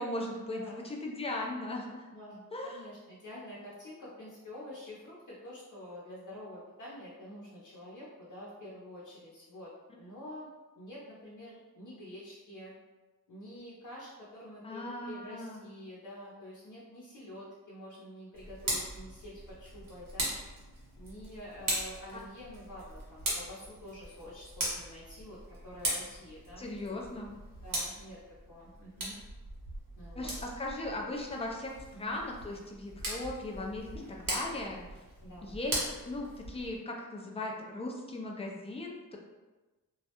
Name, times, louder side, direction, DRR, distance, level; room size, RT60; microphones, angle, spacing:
voice 1, 0.0-2.1 2.5-2.8 14.6-15.6 22.1-22.2 26.6-27.3 30.2-31.7 32.0-34.8 35.4-39.2, left 2 dB, 20° left, 0 dB, 0.3 m, -38 dB
voice 2, 2.1-9.7 10.0-10.5 10.8-12.7 13.3-20.5 20.9-25.4 25.6-27.0 27.6-28.2 28.5-29.2 30.0-30.3 31.9-32.2 35.2-35.6, left 1 dB, 60° left, -8 dB, 0.7 m, -47 dB
Tick, 18.3-36.8, right 1 dB, 75° right, 0.8 m, -39 dB
2.3 x 2.1 x 2.8 m, 1.2 s
wide cardioid pair, 130°, 34 cm